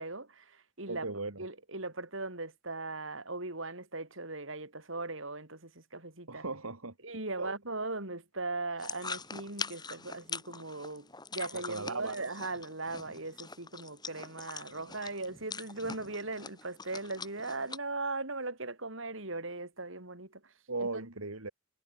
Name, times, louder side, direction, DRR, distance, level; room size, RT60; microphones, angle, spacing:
voice 1, 0.0-1.1 1.4-6.4 7.0-20.4 20.8-21.1, right 3 dB, 65° right, 4.9 m, -39 dB
voice 2, 0.9-1.4 6.3-6.9 7.4-7.5 11.5-12.3 14.7-14.8 20.7-21.5, right 3 dB, 90° right, 2.8 m, -38 dB
sound 1, 8.8-17.8, left 4 dB, 20° left, 7.8 m, -43 dB
head